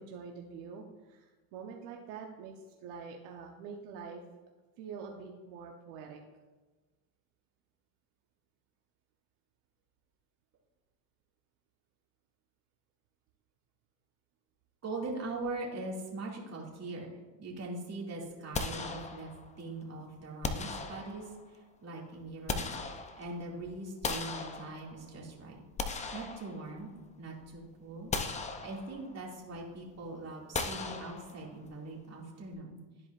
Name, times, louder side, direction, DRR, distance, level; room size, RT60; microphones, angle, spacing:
voice 1, 0.0-2.5 2.8-4.2 4.8-6.2, right 6 dB, 65° right, 1 dB, 1.1 m, -45 dB
voice 2, 14.8-17.1 17.4-19.3 19.6-22.7 23.2-25.6 26.1-26.9 27.2-28.1 28.6-32.8, right 2 dB, 30° right, -2 dB, 2.3 m, -41 dB
sound 1, 18.5-19.6 20.4-21.5 22.1-23.5 24.0-25.1 25.6-27.0 27.4-27.6 28.1-29.2 30.5-31.7, left 4 dB, 15° left, 0.5 m, -38 dB
12.5 x 4.8 x 2.5 m, 1.2 s
supercardioid pair, 105°, 49 cm